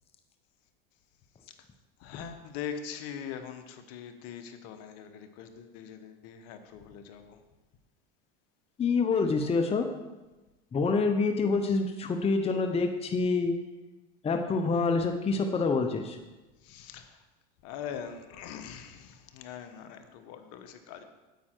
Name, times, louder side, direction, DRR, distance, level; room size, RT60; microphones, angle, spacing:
voice 1, 2.0-7.4 16.6-17.2 17.6-21.0, left 8 dB, 55° left, 8 dB, 1.1 m, -42 dB
voice 2, 8.8-9.9 10.7-13.6 14.2-16.2, left 4 dB, 20° left, 6 dB, 0.7 m, -26 dB
9.3 x 8.7 x 4.5 m, 1.1 s
supercardioid pair, 110°, 29 cm